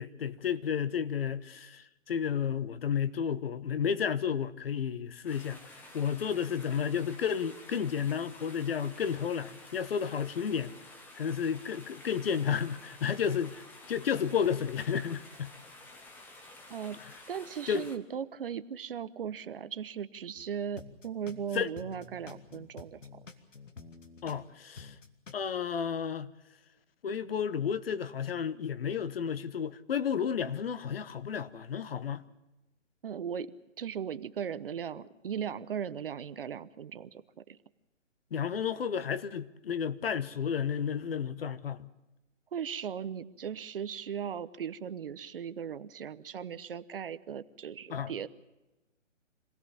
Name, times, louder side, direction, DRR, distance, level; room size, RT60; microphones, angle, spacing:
voice 1, 0.0-5.6 5.9-10.7 11.2-15.5 16.9-17.1 17.7-17.9 21.5-21.7 24.2-25.0 25.3-26.3 27.0-32.2 38.3-41.9 47.9-48.1, left 7 dB, 50° left, 1.1 m, -32 dB
sound 1, 5.3-18.0, left 2 dB, 5° left, 0.8 m, -51 dB
voice 2, 16.7-17.0 17.3-23.2 33.0-37.2 37.5-37.6 42.5-48.3, right 8 dB, 45° right, 1.0 m, -38 dB
sound 2, 20.3-20.5 20.8-24.5 24.8-25.3, left 4 dB, 75° left, 2.6 m, -49 dB
26.0 x 17.5 x 7.1 m
figure-of-eight pair, 145°, 38 cm